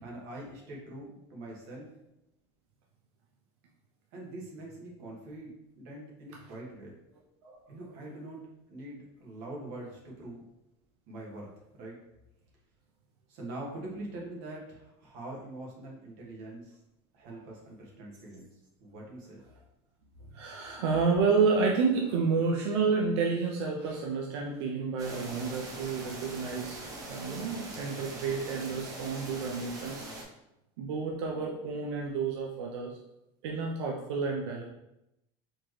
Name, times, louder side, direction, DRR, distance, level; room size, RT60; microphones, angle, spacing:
voice 1, 0.0-1.9 4.1-7.0 7.7-10.5 11.1-12.0 13.3-16.8 17.1-19.4, right 1 dB, 55° right, -2 dB, 1.3 m, -44 dB
voice 2, 20.3-26.8 27.1-30.0 30.8-32.9 33.4-34.6, right 4 dB, 90° right, 0 dB, 0.6 m, -30 dB
sound 1, 25.0-30.2, right 2 dB, 25° right, 0.6 m, -42 dB
4.3 x 2.9 x 3.1 m, 0.86 s
cardioid pair, 170°, 14 cm